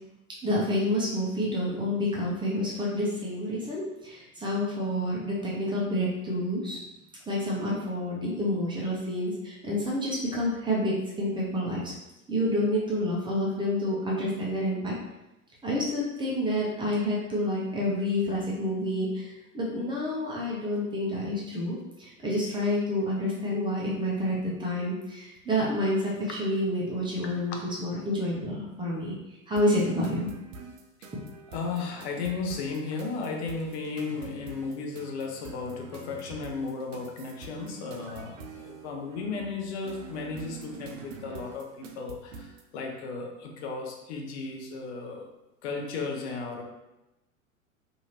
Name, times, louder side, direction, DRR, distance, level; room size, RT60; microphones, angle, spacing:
voice 1, 0.4-6.8 7.3-11.9 12.3-14.9 15.6-29.2 29.5-30.3, left 1 dB, 10° right, -5 dB, 0.6 m, -29 dB
sound 1, 29.5-42.7, right 4 dB, 70° right, 0.5 m, -46 dB
voice 2, 31.5-45.3 45.6-46.6, left 4 dB, 55° left, 1 dB, 0.7 m, -35 dB
2.7 x 2.6 x 2.9 m, 0.96 s
figure-of-eight pair, 90°, 41 cm